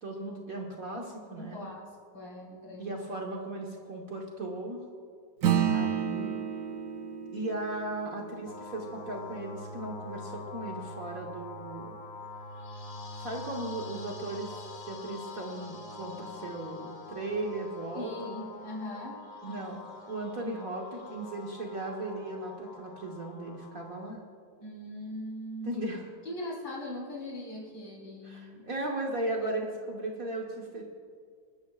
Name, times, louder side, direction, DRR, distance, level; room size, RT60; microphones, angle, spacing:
voice 1, 0.0-1.7 2.8-4.8 5.7-6.3 7.3-12.0 13.1-14.5 14.9-18.4 19.4-19.8 20.1-24.2 25.6-26.1 28.2-30.8, right 2 dB, 45° right, -1 dB, 1.5 m, -37 dB
voice 2, 1.4-2.9 5.5-5.9 17.9-19.2 19.4-19.7 24.6-25.8 26.2-28.7, left 1 dB, 60° left, -5 dB, 4.7 m, -41 dB
Acoustic guitar / Strum, 5.4-10.2, right 9 dB, 85° right, 0.7 m, -32 dB
sound 1, 8.5-24.1, left 3 dB, 45° left, 2.4 m, -44 dB
27.0 x 12.5 x 2.4 m, 2.1 s
omnidirectional pair, 2.4 m